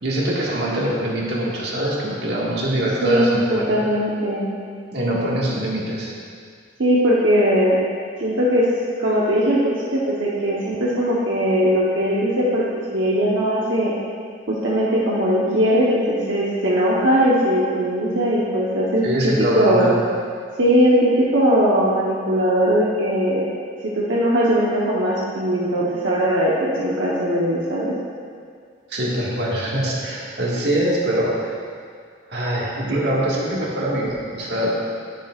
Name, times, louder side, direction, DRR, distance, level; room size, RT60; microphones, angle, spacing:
voice 1, 0.0-3.9 4.9-6.1 19.0-20.0 28.9-31.4 32.3-34.7, right 1 dB, 65° right, -5 dB, 1.9 m, -23 dB
voice 2, 3.0-4.4 6.8-7.8 8.2-8.6 9.0-12.6 12.9-13.9 14.5-19.1 19.6-19.9 20.6-23.5 23.9-27.9, equal, 85° right, -6 dB, 1.1 m, -19 dB
10.5 x 10.5 x 2.5 m, 2.1 s
head